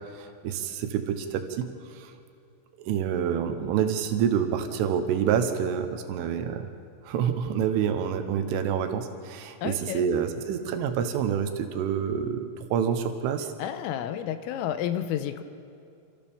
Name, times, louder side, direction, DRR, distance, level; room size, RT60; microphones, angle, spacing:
voice 1, 0.1-2.1 2.8-6.7 7.0-13.5, right 8 dB, 75° right, 7 dB, 3.5 m, -27 dB
voice 2, 9.6-10.0 13.6-15.4, left 10 dB, 85° left, 10 dB, 3.4 m, -31 dB
27.5 x 15.0 x 7.0 m, 2.4 s
omnidirectional pair, 6.0 m